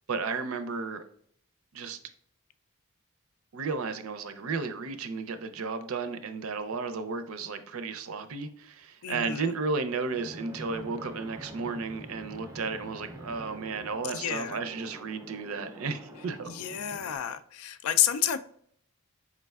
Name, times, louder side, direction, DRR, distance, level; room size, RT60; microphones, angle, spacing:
voice 1, 0.1-1.0 1.7-2.0 3.5-16.5, right 4 dB, 80° right, 10 dB, 0.5 m, -33 dB
voice 2, 9.0-9.4 14.0-14.6 16.5-18.4, left 10 dB, 85° left, 11 dB, 0.4 m, -29 dB
Fixed-wing aircraft airplane, 10.1-17.2, right 1 dB, 15° right, 0.4 m, -46 dB
4.8 x 3.2 x 2.3 m, 0.63 s
head